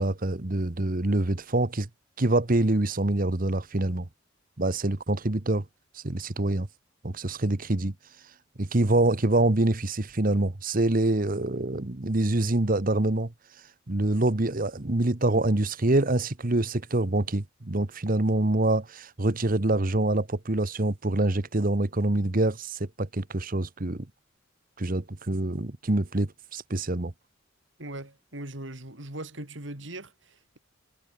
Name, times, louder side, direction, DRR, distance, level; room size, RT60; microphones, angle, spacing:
voice 1, 0.0-1.9 2.2-4.1 4.6-5.6 5.9-6.7 7.0-7.9 8.6-13.3 13.9-24.1 24.8-27.1, right 2 dB, 45° right, 1.3 m, -25 dB
voice 2, 27.8-30.6, right 1 dB, 65° right, 4.4 m, -40 dB
head